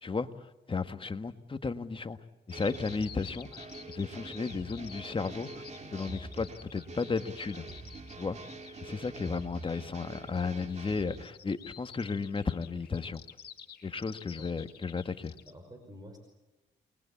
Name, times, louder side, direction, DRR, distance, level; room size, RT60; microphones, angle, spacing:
voice 1, 0.0-2.2 2.5-5.6 5.9-7.7 8.2-8.4 8.8-13.2 13.8-15.3, left 4 dB, 25° left, 9 dB, 1.6 m, -34 dB
Bird vocalization bird call bird song, 2.5-15.5, left 8 dB, 55° left, 2.6 m, -51 dB
sound 1, 2.5-11.3, right 2 dB, 35° right, 3.3 m, -45 dB
voice 2, 15.4-16.2, equal, 20° right, 4 dB, 5.4 m, -49 dB
28.5 x 22.0 x 8.5 m, 1.0 s
cardioid pair, 90°, 20 cm